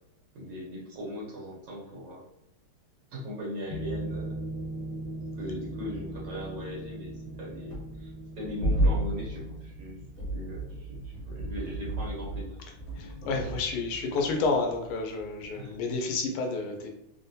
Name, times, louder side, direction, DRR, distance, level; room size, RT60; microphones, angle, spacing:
voice 1, 0.3-2.2 3.1-4.4 5.4-8.1 8.4-10.0 10.3-12.6 15.5-15.8, equal, 65° right, -4 dB, 1.3 m, -39 dB
sound 1, 3.7-15.2 15.5-15.7, right 1 dB, 35° left, 1.3 m, -34 dB
voice 2, 12.9-16.9, left 3 dB, 85° left, 2 dB, 1.5 m, -30 dB
4.0 x 2.1 x 2.6 m, 0.83 s
omnidirectional pair, 2.4 m